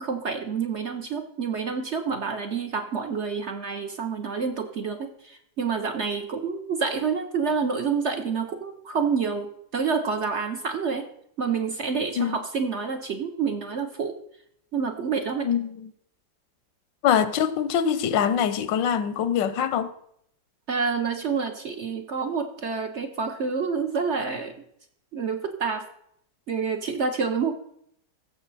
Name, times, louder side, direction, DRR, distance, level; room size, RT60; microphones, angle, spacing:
voice 1, 0.0-11.1 11.4-14.2 14.7-15.6 20.7-24.5 25.1-25.9 26.5-27.6, right 5 dB, 55° right, 0.8 m, -28 dB
voice 2, 15.4-15.9 17.0-19.9, left 8 dB, 90° left, 1.4 m, -24 dB
15.5 x 6.8 x 4.1 m
omnidirectional pair, 1.9 m